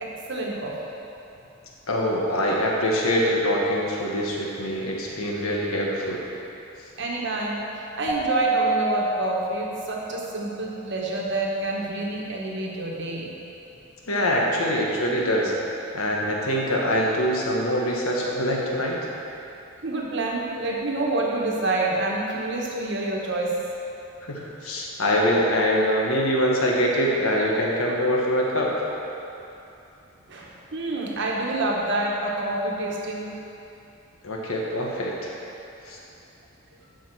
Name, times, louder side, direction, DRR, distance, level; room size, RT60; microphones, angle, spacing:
voice 1, 0.0-0.8 7.0-7.7 7.9-13.3 19.8-23.5 30.3-33.3, right 2 dB, 55° right, -2 dB, 1.2 m, -28 dB
voice 2, 1.9-6.2 14.1-15.5 15.9-19.0 24.2-28.9 34.2-35.3 35.9-36.0, equal, 80° left, -2 dB, 1.4 m, -24 dB
Keyboard (musical), 8.1-10.3, right 3 dB, 15° left, 0.6 m, -27 dB
11.5 x 5.1 x 4.6 m, 2.9 s
head